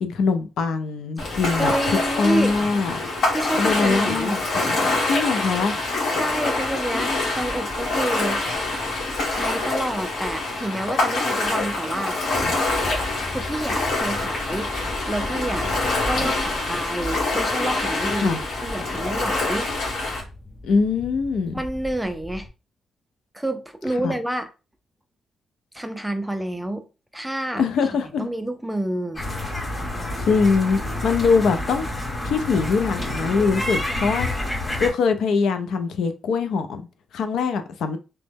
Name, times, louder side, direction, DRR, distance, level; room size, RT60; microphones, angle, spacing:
voice 1, 0.0-1.7 2.2-3.0 3.6-4.4 5.1-5.7 18.1-18.4 20.6-21.6 24.0-24.1 27.5-28.3 30.2-31.9 32.2-34.3 34.6-36.9 37.1-38.0, left 5 dB, 75° left, 0.4 m, -22 dB
Ocean, 1.2-20.2, left 2 dB, 60° left, 1.2 m, -25 dB
voice 2, 1.6-2.6 3.3-4.4 6.1-8.4 9.3-12.2 13.3-14.7 15.1-15.7 16.1-19.7 21.5-22.5 23.3-24.5 25.7-26.9 27.1-27.6 28.2-29.2, right 1 dB, 5° right, 0.3 m, -28 dB
sound 1, 12.3-22.5, left 1 dB, 40° left, 0.7 m, -37 dB
sound 2, 29.1-34.9, left 1 dB, 20° left, 1.6 m, -28 dB
3.0 x 2.1 x 3.4 m
cardioid pair, 145°, 0 cm